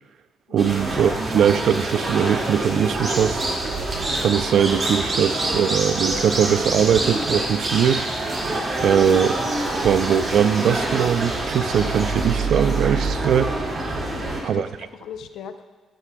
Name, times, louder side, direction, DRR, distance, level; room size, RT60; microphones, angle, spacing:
voice 1, 0.5-3.4 4.2-8.0 8.8-9.4 9.8-13.8 14.4-14.7, right 8 dB, 70° right, 13 dB, 0.4 m, -21 dB
sound 1, 0.6-14.4, right 2 dB, 40° right, 2.1 m, -25 dB
voice 2, 14.0-15.6, left 8 dB, 75° left, 9 dB, 0.6 m, -39 dB
11.5 x 11.0 x 2.3 m, 1.3 s
cardioid pair, 90°, 0 cm